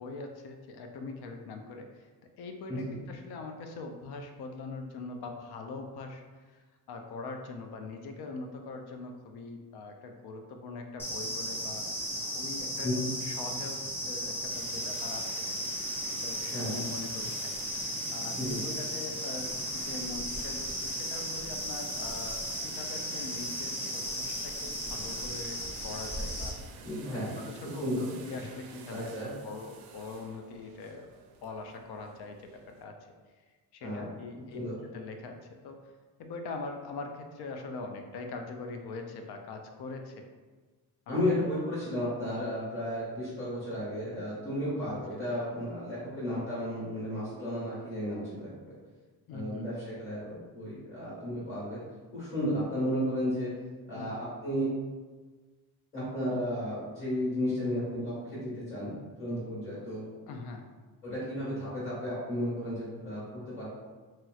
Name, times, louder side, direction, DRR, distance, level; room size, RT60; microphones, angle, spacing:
voice 1, 0.0-2.1 2.4-11.8 12.2-15.5 16.2-17.6 18.1-26.8 27.4-31.1 31.4-33.0 33.7-34.6 34.9-35.8 36.2-40.3 41.1-41.2 44.9-45.2 49.3-49.7 53.9-54.1 60.3-60.7, left 3 dB, 80° left, 4 dB, 0.5 m, -42 dB
sound 1, 11.0-26.5, equal, 5° left, 0.4 m, -35 dB
sound 2, 14.5-32.8, right 5 dB, 70° right, 0.5 m, -49 dB
voice 2, 26.8-27.4 27.8-28.2 28.9-29.3 33.8-34.1 34.5-34.8 41.1-48.5 49.3-51.8 52.1-53.5 53.9-54.7 55.9-60.0 61.0-63.7, equal, 35° left, -9 dB, 1.3 m, -33 dB
3.0 x 2.9 x 2.3 m, 1.4 s
cardioid pair, 160°, 38 cm